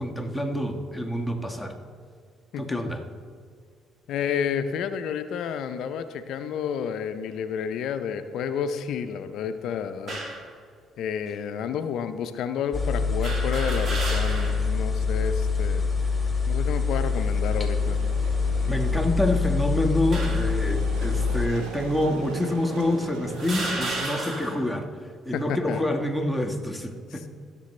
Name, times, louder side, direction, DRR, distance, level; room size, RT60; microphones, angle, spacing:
voice 1, 0.0-1.7 2.6-3.0 18.6-24.9 25.2-27.3, left 1 dB, ahead, 3 dB, 1.4 m, -27 dB
voice 2, 4.1-10.2 11.0-15.9 16.5-18.0 25.3-25.8 27.1-27.3, left 7 dB, 70° left, 10 dB, 0.5 m, -30 dB
sound 1, 10.1-10.5 11.3-11.4 13.2-14.7 15.1-15.2 16.3-16.8 17.5-17.7 18.7-19.5 20.1-20.6 21.5-21.6 22.5-22.6 23.3-24.7, right 2 dB, 55° right, 2.2 m, -33 dB
sound 2, 12.7-21.5, left 4 dB, 20° left, 1.8 m, -25 dB
sound 3, 16.8-24.1, right 3 dB, 85° right, 1.0 m, -40 dB
16.0 x 6.8 x 3.2 m, 2.2 s
hypercardioid pair, 55°, 0 cm